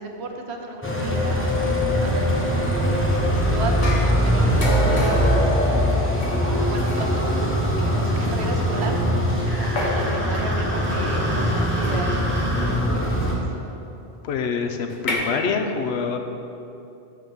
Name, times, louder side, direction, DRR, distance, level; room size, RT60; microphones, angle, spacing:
voice 1, 0.0-2.7 3.3-5.5 6.7-9.0 9.6-13.4, right 3 dB, 85° right, 3 dB, 1.1 m, -34 dB
sound 1, 0.8-13.4, equal, 10° left, 1.0 m, -22 dB
sound 2, 3.8-7.3 8.2-8.3 9.8-10.5 11.8-12.2 14.9-15.1, left 1 dB, 50° left, 1.1 m, -27 dB
sound 3, 9.3-12.8, equal, 10° right, 1.0 m, -33 dB
voice 2, 14.2-16.2, left 5 dB, 80° left, 5 dB, 0.9 m, -25 dB
6.4 x 5.2 x 6.1 m, 2.8 s
omnidirectional pair, 1.1 m